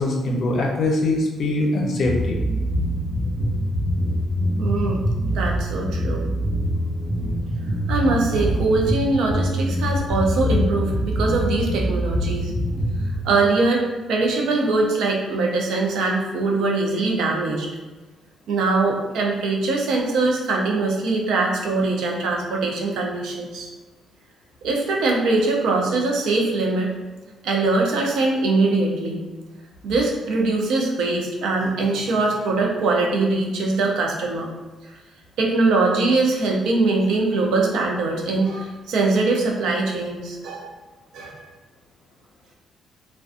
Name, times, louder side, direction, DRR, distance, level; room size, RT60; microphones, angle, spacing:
voice 1, 0.0-2.4, left 2 dB, 65° left, 0 dB, 0.5 m, -22 dB
sound 1, 2.0-13.2, equal, 10° left, 0.8 m, -24 dB
voice 2, 4.6-5.0 5.3-6.3 7.9-12.5 13.2-17.7 18.5-23.7 24.6-26.9 27.4-29.2 29.8-34.5 35.4-40.7 41.1-41.5, right 3 dB, 80° right, 0 dB, 0.5 m, -22 dB
2.4 x 2.2 x 2.4 m, 1.2 s
cardioid pair, 90°, 0 cm